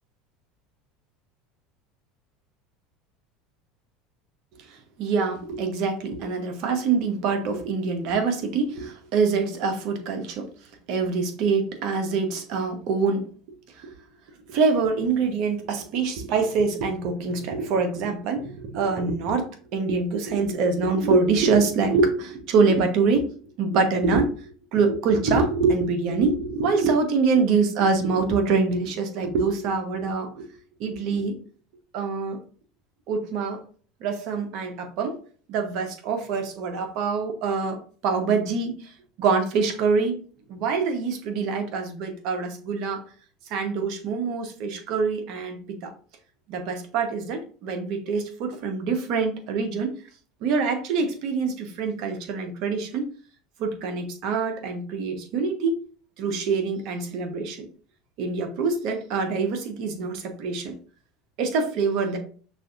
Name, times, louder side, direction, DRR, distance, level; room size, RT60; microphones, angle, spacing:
voice 1, 5.0-10.5 10.9-13.2 13.8-13.9 14.5-23.3 23.6-24.3 24.7-30.5 30.8-31.3 31.9-32.4 33.1-33.6 34.0-35.2 35.5-38.9 39.2-40.1 40.5-43.0 43.5-45.9 46.5-49.9 50.4-53.1 53.6-55.8 56.2-57.7 58.2-60.8 61.4-62.2, right 4 dB, 60° right, 5 dB, 0.9 m, -25 dB
6.1 x 2.6 x 2.4 m, 0.42 s
hypercardioid pair, 80°, 0 cm